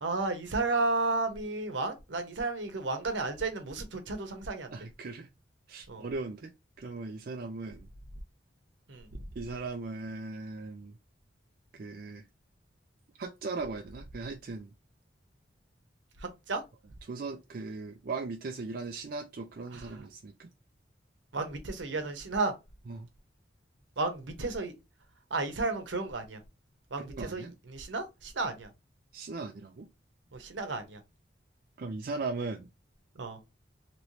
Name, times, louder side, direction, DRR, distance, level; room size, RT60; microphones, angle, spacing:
voice 1, 0.0-4.7 5.9-6.0 8.9-9.1 16.5-16.6 19.7-20.0 21.3-22.5 24.0-24.7 25.3-26.4 26.9-28.7 30.3-31.0 33.2-33.4, right 3 dB, 80° right, 0.9 m, -33 dB
voice 2, 4.7-5.3 5.7-6.5 6.8-7.9 9.4-10.9 11.7-12.2 13.2-14.7 17.0-20.5 22.9-23.1 27.1-27.5 29.1-29.9 31.8-32.7, right 3 dB, 50° right, 0.4 m, -38 dB
3.1 x 3.0 x 2.7 m
head